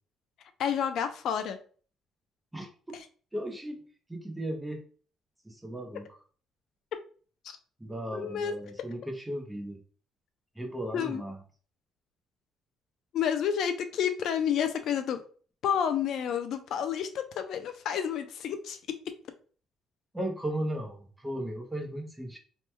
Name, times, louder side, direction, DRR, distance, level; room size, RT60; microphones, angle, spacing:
voice 1, 0.6-1.6 7.4-7.6 8.1-8.6 10.9-11.2 13.1-15.2 15.6-19.1, left 8 dB, 55° left, 8 dB, 0.3 m, -30 dB
voice 2, 2.5-3.0 3.3-3.8 4.1-4.8 5.4-6.0 7.8-9.8 10.6-11.4 20.1-22.4, right 1 dB, 5° right, 3 dB, 0.6 m, -36 dB
3.0 x 2.2 x 3.2 m, 0.41 s
cardioid pair, 155°, 0 cm